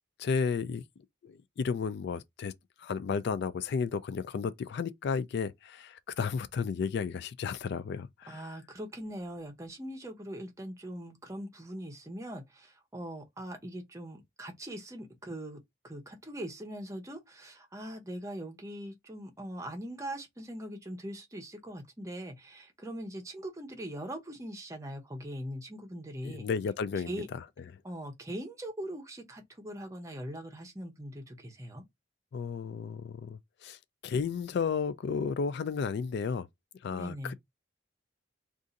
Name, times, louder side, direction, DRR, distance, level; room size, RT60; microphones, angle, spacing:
voice 1, 0.2-0.8 1.2-2.5 2.8-8.5 26.2-27.4 32.3-33.8 34.0-36.5 36.8-37.3, left 5 dB, 55° left, 0.3 m, -33 dB
voice 2, 8.3-15.6 15.8-26.5 27.0-27.3 27.8-31.8 36.9-37.3, right 1 dB, 15° right, 0.7 m, -41 dB
2.6 x 2.4 x 3.8 m
head